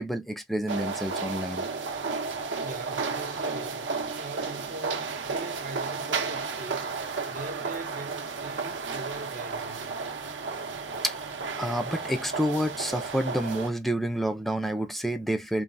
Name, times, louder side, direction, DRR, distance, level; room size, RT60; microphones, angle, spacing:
voice 1, 0.0-1.7 11.0-11.2 11.6-15.6, equal, ahead, 0.4 m, -29 dB
sound 1, 0.7-13.7, right 4 dB, 80° right, 0.7 m, -33 dB
voice 2, 2.6-3.9 4.2-10.0, right 2 dB, 50° right, 0.5 m, -41 dB
3.2 x 2.0 x 2.5 m
head